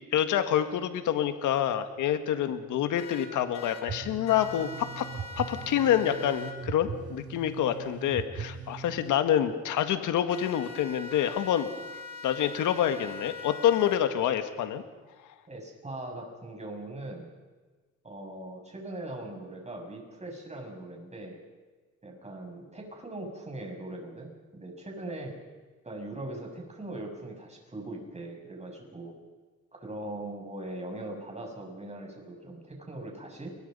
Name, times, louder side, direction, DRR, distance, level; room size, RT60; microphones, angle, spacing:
voice 1, 0.1-5.1 5.4-11.7 12.2-14.8, left 10 dB, 85° left, 9 dB, 1.7 m, -27 dB
sound 1, 3.0-3.8 4.3-6.5 10.3-14.0, left 3 dB, 60° left, 4.2 m, -43 dB
sound 2, 3.9-9.2, right 6 dB, 50° right, 4.0 m, -40 dB
voice 2, 15.5-17.3 18.0-21.4 22.0-25.4 25.8-29.2 29.7-33.6, right 1 dB, 20° right, 1 dB, 7.7 m, -40 dB
29.5 x 22.5 x 5.5 m, 1.3 s
cardioid pair, 90°, 30 cm